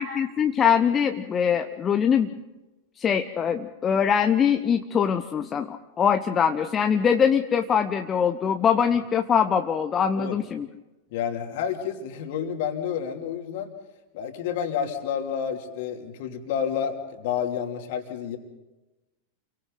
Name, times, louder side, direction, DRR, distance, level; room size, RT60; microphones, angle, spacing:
voice 1, 0.0-2.3 3.0-10.7, left 7 dB, 25° left, 7 dB, 0.9 m, -23 dB
voice 2, 11.1-13.7 14.1-18.4, left 8 dB, 50° left, 3 dB, 3.0 m, -30 dB
29.5 x 24.0 x 4.0 m, 1.0 s
figure-of-eight pair, 90°, 0 cm